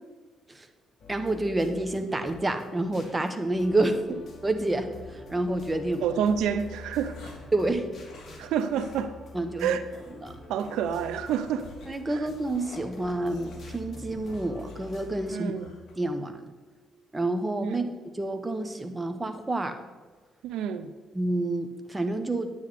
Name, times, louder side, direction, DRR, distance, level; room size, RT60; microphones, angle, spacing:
sound 1, 1.0-15.3, left 2 dB, 40° left, 2.5 m, -46 dB
voice 1, 1.1-4.0 4.4-4.9 5.3-6.0 7.5-7.9 9.3-9.8 10.2-10.4 11.9-15.5 16.0-16.4 17.1-17.8 18.1-19.7 21.1-22.5, right 2 dB, 15° right, 1.1 m, -28 dB
sound 2, 5.4-5.7 6.4-7.6 8.0-8.4 8.7-9.0 9.3-9.4 9.9-10.2 10.6-15.9, left 3 dB, 65° left, 3.0 m, -50 dB
voice 2, 6.0-7.3 8.4-9.1 9.6-9.8 10.5-11.7 12.1-12.2 15.3-15.7 17.6-17.8 20.4-20.9, right 8 dB, 85° right, 0.6 m, -28 dB
9.6 x 9.4 x 4.2 m
cardioid pair, 90°, 0 cm